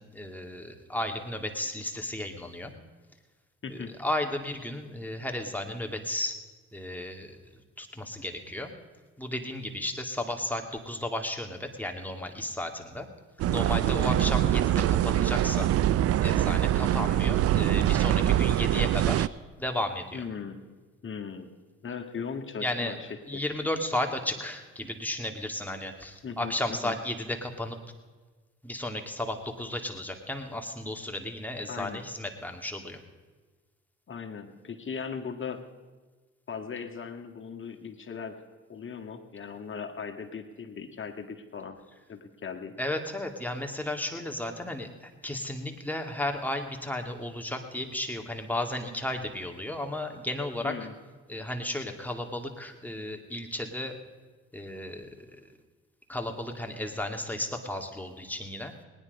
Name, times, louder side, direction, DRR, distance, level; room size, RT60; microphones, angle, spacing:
voice 1, 0.0-2.7 3.7-6.4 6.7-8.7 9.2-13.1 13.5-15.7 16.2-19.3 19.6-20.2 22.6-22.9 23.3-27.8 28.6-33.0 42.8-50.8 51.3-54.0 54.5-55.3 56.1-58.7, left 1 dB, 5° left, 3 dB, 2.3 m, -34 dB
sound 1, 13.4-19.3, right 12 dB, 50° right, 0.4 m, -24 dB
voice 2, 20.1-20.6 21.0-21.5 21.8-23.4 26.2-26.5 26.8-26.9 31.7-32.0 34.1-35.6 36.5-38.4 38.7-41.8 42.1-42.7 50.6-50.9, left 6 dB, 40° left, 4 dB, 1.9 m, -38 dB
19.0 x 10.0 x 5.4 m, 1.3 s
hypercardioid pair, 55°, 31 cm